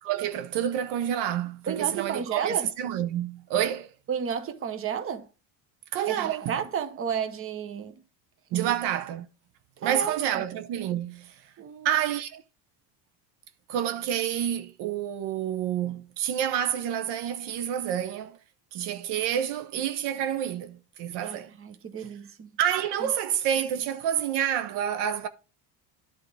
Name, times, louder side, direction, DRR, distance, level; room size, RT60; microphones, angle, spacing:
voice 1, 0.0-3.9 5.9-6.6 8.5-9.3 9.8-11.5 11.8-12.4 13.7-18.4 18.7-21.5 22.0-22.1 22.6-25.3, right 10 dB, 65° right, 0.8 m, -28 dB
voice 2, 1.7-2.7 4.1-5.3 6.1-8.0 8.5-8.7 9.8-10.5 11.6-11.9 21.2-22.6 23.0-23.1, right 7 dB, 30° right, 0.9 m, -32 dB
10.0 x 3.7 x 4.6 m
cardioid pair, 120°, 45 cm